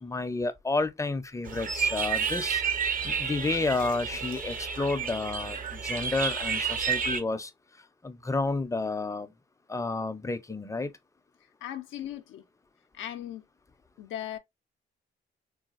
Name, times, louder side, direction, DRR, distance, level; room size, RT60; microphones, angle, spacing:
voice 1, 0.0-2.6 3.0-7.5 8.0-9.3 9.7-10.9, left 3 dB, 15° left, 0.5 m, -31 dB
sound 1, 1.4-7.2, right 6 dB, 45° right, 0.7 m, -30 dB
voice 2, 11.6-12.4 12.9-13.4 14.0-14.4, left 11 dB, 75° left, 0.4 m, -37 dB
3.9 x 2.3 x 2.4 m
cardioid pair, 90°, 20 cm